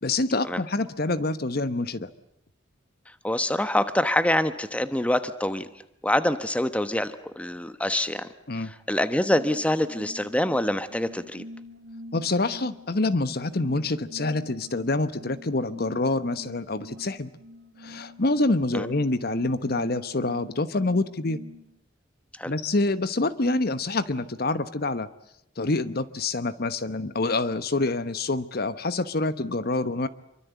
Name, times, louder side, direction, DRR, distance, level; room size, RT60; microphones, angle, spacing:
voice 1, 0.0-2.1 8.5-8.7 12.1-17.3 17.8-21.4 22.4-25.1 25.6-30.1, left 2 dB, 55° left, 13 dB, 1.1 m, -26 dB
voice 2, 3.2-5.7 6.0-8.3 8.6-11.4 18.7-18.9 22.4-22.5, left 1 dB, 5° left, 11 dB, 1.2 m, -25 dB
sound 1, 9.8-21.6, left 1 dB, 65° right, 4.4 m, -45 dB
26.5 x 24.0 x 8.3 m, 0.81 s
head